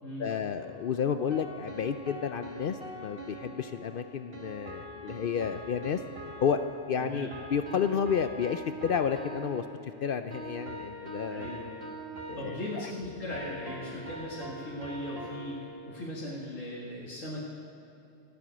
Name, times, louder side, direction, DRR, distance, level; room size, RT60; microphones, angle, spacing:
voice 1, 0.2-6.0 6.4-6.6 6.9-9.6 10.0-11.6 12.3-12.6, left 7 dB, 60° left, 9 dB, 0.6 m, -31 dB
sound 1, 0.6-16.1, right 1 dB, 50° right, 1.8 m, -44 dB
voice 2, 7.0-7.3 11.3-11.8 12.3-15.6 15.9-17.4, left 1 dB, 90° left, -8 dB, 2.6 m, -38 dB
15.0 x 7.8 x 8.9 m, 2.7 s
omnidirectional pair, 1.3 m